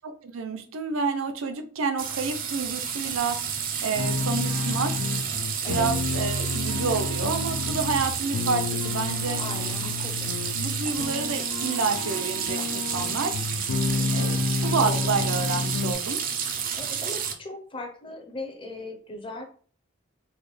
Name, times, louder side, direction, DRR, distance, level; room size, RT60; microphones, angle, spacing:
voice 1, 0.0-3.4 3.8-4.9 5.7-9.4 10.5-13.4 14.1-16.2, right 4 dB, 90° right, 7 dB, 0.6 m, -29 dB
sound 1, 2.0-17.3, right 7 dB, 40° right, 0.5 m, -30 dB
sound 2, 4.0-15.9, left 3 dB, 85° left, 0.4 m, -30 dB
voice 2, 9.4-10.3 13.9-14.4 14.8-15.0 16.7-19.4, left 2 dB, 25° left, 4 dB, 0.6 m, -38 dB
4.0 x 2.2 x 3.2 m, 0.43 s
head